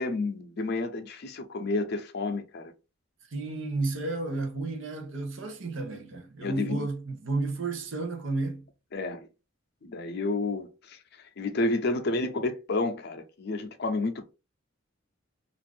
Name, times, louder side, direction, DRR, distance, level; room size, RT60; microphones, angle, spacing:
voice 1, 0.0-2.7 6.4-6.9 8.9-9.3 9.8-11.0 11.4-14.3, left 2 dB, 55° left, 0.5 m, -30 dB
voice 2, 3.3-8.7, right 3 dB, 75° right, 0.7 m, -32 dB
2.5 x 2.4 x 3.4 m
head